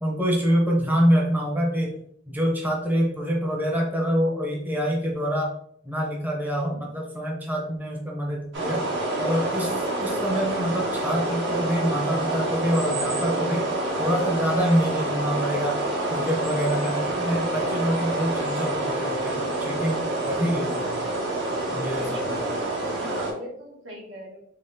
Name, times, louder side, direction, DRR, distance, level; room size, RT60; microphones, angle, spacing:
voice 1, 0.0-1.9 2.3-5.5 5.8-8.8 9.2-13.6 14.0-15.8 16.1-21.0 21.7-22.5, equal, 10° right, -2 dB, 0.7 m, -26 dB
sound 1, 8.5-23.3, right 2 dB, 65° right, 1.2 m, -27 dB
voice 2, 21.9-24.4, right 1 dB, 80° right, -2 dB, 1.3 m, -41 dB
3.8 x 3.4 x 2.6 m, 0.69 s
head